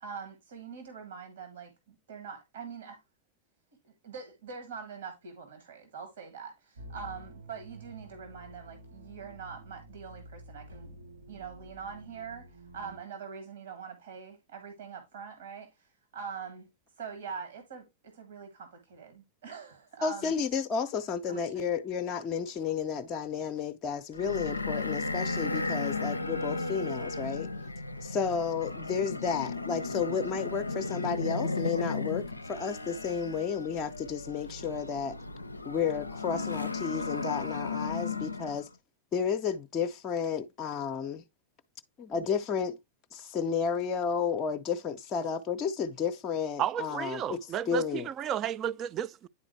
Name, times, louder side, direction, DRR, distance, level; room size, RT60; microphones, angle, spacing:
voice 1, 0.0-3.0 3.8-10.9 11.3-16.7 17.0-20.3 21.3-21.7, right 6 dB, 60° right, 1.7 m, -44 dB
sound 1, 6.7-13.0, right 1 dB, 80° right, 3.3 m, -49 dB
voice 2, 20.0-27.5 28.0-35.2 35.6-38.7 39.1-41.2 42.0-42.8 43.1-47.4 47.7-48.1, left 6 dB, 30° left, 0.5 m, -32 dB
sound 2, 24.1-38.7, left 3 dB, 85° left, 0.4 m, -35 dB
voice 3, 46.6-49.3, right 10 dB, 30° right, 0.3 m, -32 dB
9.8 x 3.9 x 3.1 m
figure-of-eight pair, 90°, 0 cm